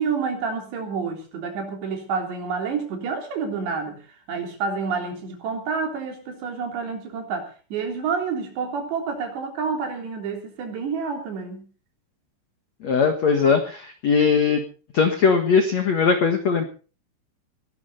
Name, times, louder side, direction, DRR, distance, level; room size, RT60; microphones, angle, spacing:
voice 1, 0.0-4.0 4.3-11.7, right 5 dB, 60° right, 3 dB, 5.3 m, -28 dB
voice 2, 12.8-14.6 14.9-16.6, left 5 dB, 70° left, 6 dB, 1.6 m, -20 dB
21.0 x 12.5 x 4.1 m, 0.37 s
omnidirectional pair, 5.9 m